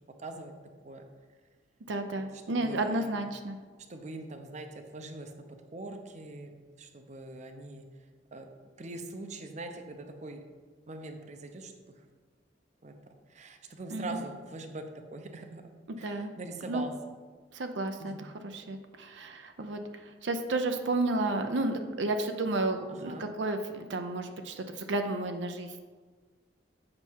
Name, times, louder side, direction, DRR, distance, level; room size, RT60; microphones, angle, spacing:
voice 1, 0.2-0.5 0.8-1.1 2.6-3.1 3.9-5.3 5.7-7.9 8.3-8.5 8.8-10.4 10.9-11.7 12.8-12.9 13.3-14.8 15.1-15.7 16.0-16.9 18.0-18.2 22.9-23.3, right 2 dB, 40° right, 5 dB, 0.6 m, -42 dB
voice 2, 1.9-3.6 13.9-14.2 15.9-16.3 16.7-16.9 17.5-19.8 20.2-25.8, right 2 dB, 80° right, 6 dB, 0.6 m, -32 dB
7.5 x 5.5 x 4.6 m, 1.4 s
head